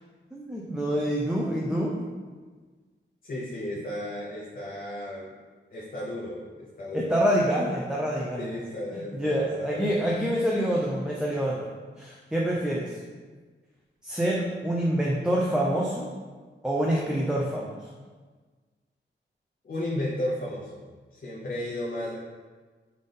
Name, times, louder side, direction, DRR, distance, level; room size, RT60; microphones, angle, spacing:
voice 1, 0.3-1.9 6.9-8.5 9.1-11.7 12.0-12.9 14.0-16.1 16.6-17.8, equal, 5° right, -4 dB, 0.5 m, -26 dB
voice 2, 3.2-5.3 5.7-7.2 8.4-10.2 19.6-20.8 21.1-22.2, left 1 dB, 45° left, -6 dB, 0.7 m, -34 dB
4.1 x 3.4 x 3.7 m, 1.4 s
wide cardioid pair, 135°, 20 cm